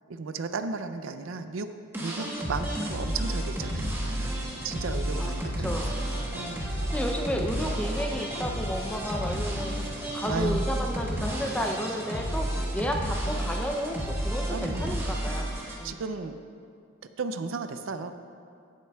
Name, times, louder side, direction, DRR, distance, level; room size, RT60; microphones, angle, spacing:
voice 1, 0.1-1.7 2.0-4.3 4.6-6.1 6.3-6.6 7.6-7.7 10.3-10.6 13.2-13.4 14.5-15.0 15.8-16.4 17.2-18.1, right 4 dB, 70° right, 9 dB, 0.5 m, -34 dB
sound 1, 1.9-15.7, equal, 10° right, 1.1 m, -31 dB
sound 2, 3.6-13.4, right 1 dB, 70° left, 2.0 m, -46 dB
voice 2, 5.2-5.9 6.9-12.5 12.7-15.5 15.8-16.0, equal, 5° left, 2 dB, 0.5 m, -32 dB
16.5 x 7.5 x 2.3 m, 2.3 s
head